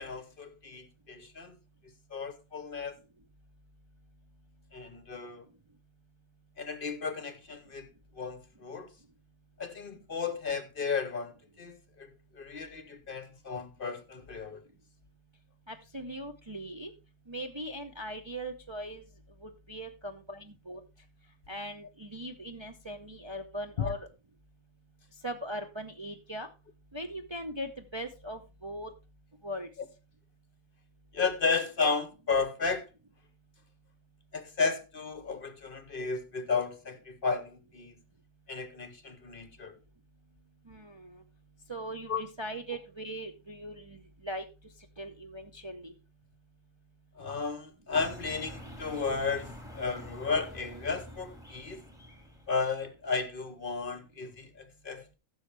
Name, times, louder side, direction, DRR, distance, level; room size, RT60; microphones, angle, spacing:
voice 1, 0.0-1.5 2.1-2.9 4.7-5.4 6.6-7.9 8.2-8.9 9.6-11.3 11.6-11.8 12.4-14.6 23.8-23.9 31.1-32.9 34.3-37.9 38.5-39.7 42.1-42.2 47.2-51.8 52.5-55.2, left 5 dB, 45° left, 0.9 m, -33 dB
voice 2, 15.7-16.9 17.3-19.0 19.4-20.8 21.5-24.1 25.2-26.5 26.9-28.9 29.4-29.7 40.7-41.2 41.7-44.4 45.0-45.9, right 1 dB, 30° right, 0.6 m, -40 dB
sound 1, 47.9-52.9, left 1 dB, ahead, 2.0 m, -47 dB
14.5 x 6.4 x 3.3 m
omnidirectional pair, 1.4 m